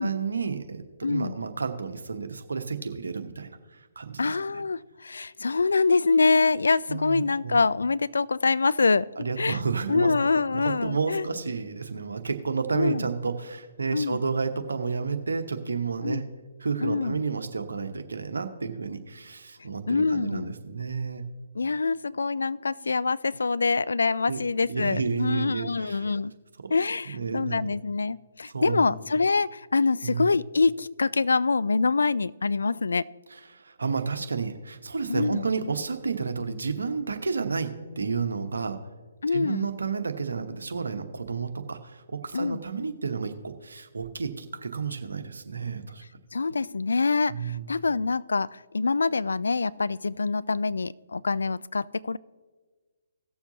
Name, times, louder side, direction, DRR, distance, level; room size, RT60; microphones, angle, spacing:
voice 1, 0.0-3.5 4.0-4.6 6.9-7.6 9.2-10.1 10.5-16.2 16.6-21.2 24.3-24.4 24.7-26.0 26.6-26.7 27.1-27.7 28.5-29.0 30.0-30.3 33.3-38.8 39.3-46.0 47.3-47.7, right 5 dB, 75° right, 7 dB, 1.1 m, -31 dB
voice 2, 1.0-1.3 4.2-9.6 9.9-11.3 12.7-13.1 13.9-14.2 16.0-16.2 16.8-17.2 19.9-20.5 21.5-26.3 26.7-33.1 35.1-35.5 39.2-39.7 42.3-42.6 46.3-52.2, left 4 dB, 75° left, 19 dB, 0.3 m, -25 dB
17.5 x 7.1 x 2.8 m, 1.4 s
figure-of-eight pair, 135°, 0 cm